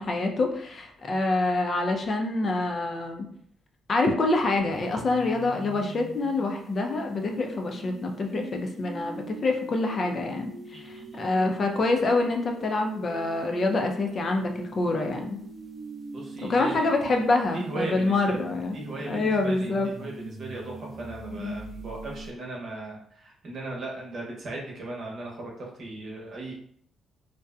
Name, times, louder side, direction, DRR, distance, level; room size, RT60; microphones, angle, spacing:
voice 1, 0.0-3.3 3.9-15.4 16.4-18.8 19.1-19.9 21.4-21.6, left 2 dB, 45° left, 3 dB, 0.4 m, -26 dB
sound 1, 4.7-22.3, right 3 dB, 35° right, 0.4 m, -42 dB
voice 2, 10.7-11.3 16.1-17.2 17.5-18.4 18.7-26.5, right 2 dB, 60° right, -2 dB, 0.8 m, -37 dB
2.6 x 2.1 x 2.4 m, 0.64 s
cardioid pair, 90°, 0 cm